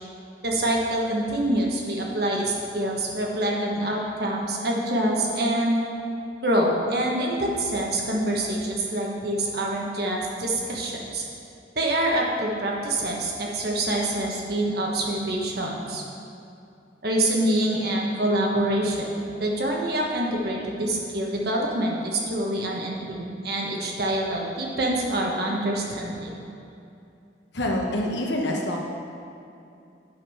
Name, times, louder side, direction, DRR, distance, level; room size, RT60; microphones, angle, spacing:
voice 1, 0.4-5.8 6.4-11.2 11.7-16.0 17.0-19.1 19.4-26.3, right 1 dB, 55° right, -1 dB, 1.3 m, -26 dB
voice 2, 27.5-28.8, left 1 dB, 65° left, 0 dB, 1.2 m, -26 dB
9.1 x 5.4 x 5.6 m, 2.6 s
head